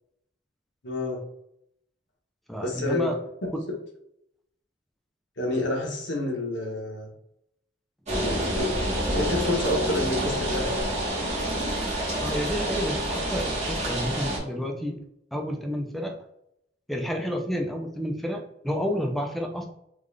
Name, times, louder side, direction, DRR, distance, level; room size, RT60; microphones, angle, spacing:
voice 1, 0.8-1.2 2.6-3.1 5.4-7.1 8.1-10.8, left 1 dB, 70° left, -1 dB, 1.0 m, -29 dB
voice 2, 2.5-3.2 3.5-3.6 12.1-15.0 15.3-16.2 16.9-19.6, equal, ahead, 2 dB, 0.4 m, -30 dB
sound 1, 8.1-14.4, right 1 dB, 35° right, 1.0 m, -28 dB
3.7 x 2.4 x 3.2 m, 0.76 s
head